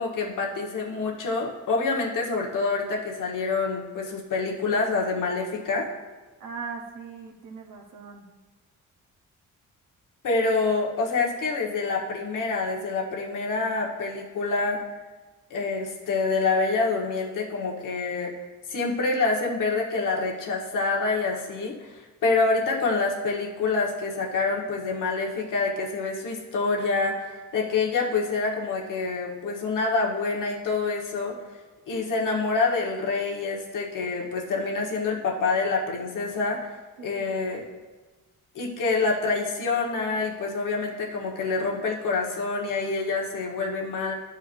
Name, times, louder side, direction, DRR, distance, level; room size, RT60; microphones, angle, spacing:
voice 1, 0.0-5.9 10.2-14.8 15.5-18.3 18.7-31.3 31.9-36.6 37.0-37.6 38.5-44.1, left 3 dB, 70° left, -2 dB, 1.4 m, -26 dB
voice 2, 6.4-8.2 37.0-37.3, right 5 dB, 70° right, 0 dB, 1.0 m, -39 dB
11.5 x 4.5 x 2.6 m, 1.2 s
cardioid pair, 75°, 32 cm